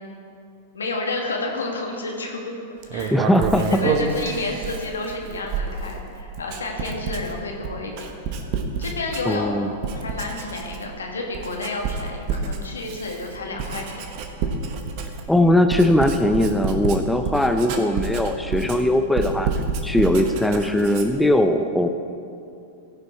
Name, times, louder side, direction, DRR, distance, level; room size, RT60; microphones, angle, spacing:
voice 1, 0.7-2.5 2.9-8.1 8.8-9.6 9.9-13.9, left 3 dB, 80° left, 1 dB, 1.7 m, -30 dB
Writing, 2.8-9.5 9.8-11.0 11.3-21.3, right 5 dB, 50° right, 1.1 m, -29 dB
voice 2, 3.1-3.6 9.3-9.7 15.3-19.5 19.8-21.9, left 1 dB, 5° left, 7 dB, 0.5 m, -20 dB
15.5 x 5.9 x 4.6 m, 2.5 s
figure-of-eight pair, 100°, 0 cm